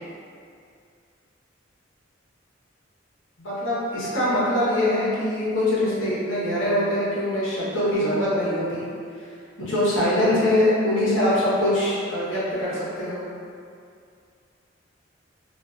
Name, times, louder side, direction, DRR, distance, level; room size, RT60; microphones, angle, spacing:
voice 1, 3.4-8.9 9.6-13.2, left 1 dB, 80° left, -9 dB, 0.7 m, -23 dB
2.4 x 2.3 x 2.3 m, 2.4 s
head